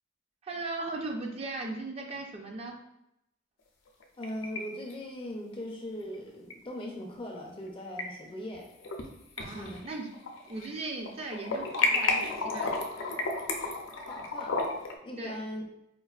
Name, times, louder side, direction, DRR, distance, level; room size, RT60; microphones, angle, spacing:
voice 1, 0.4-2.7 9.4-10.1 10.4-12.9 15.2-15.4, right 2 dB, 30° right, 2 dB, 0.4 m, -38 dB
sound 1, 3.9-4.6 4.9-5.0 6.5-6.6 7.7-8.0 8.5-9.1 9.4-10.7 11.0-14.9, left 3 dB, 85° left, 0.6 m, -31 dB
voice 2, 4.2-8.7 9.5-9.8 14.1-14.6 15.0-15.7, equal, 25° left, 1 dB, 0.5 m, -39 dB
4.4 x 2.5 x 2.3 m, 0.82 s
head